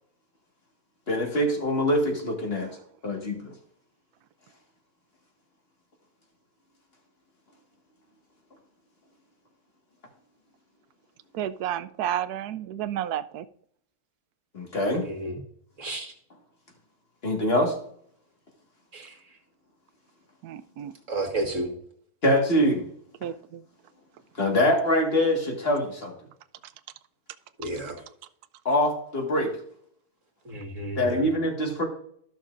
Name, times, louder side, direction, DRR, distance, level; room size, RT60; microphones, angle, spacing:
voice 1, 1.1-2.7 3.0-3.5 14.5-15.1 17.2-17.8 22.2-22.9 24.4-26.1 28.7-29.5 31.0-31.8, left 1 dB, 40° left, 2 dB, 2.0 m, -24 dB
voice 2, 11.3-13.5 20.4-20.9 23.2-23.6, right 11 dB, 85° right, 13 dB, 1.1 m, -31 dB
voice 3, 15.0-15.4 15.8-16.1 18.9-19.2 21.1-21.7 27.6-28.0 30.4-31.3, right 2 dB, 55° right, 1 dB, 2.2 m, -32 dB
14.5 x 6.4 x 2.5 m, 0.64 s
omnidirectional pair, 1.6 m